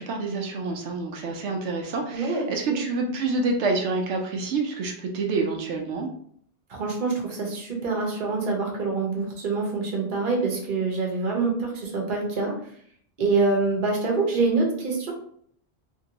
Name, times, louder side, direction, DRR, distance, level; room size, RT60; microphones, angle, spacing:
voice 1, 0.0-6.1, right 3 dB, 90° right, 2 dB, 0.9 m, -27 dB
voice 2, 6.7-12.5 13.2-15.1, right 3 dB, 50° right, 0 dB, 0.9 m, -25 dB
2.8 x 2.6 x 2.9 m, 0.63 s
omnidirectional pair, 1.1 m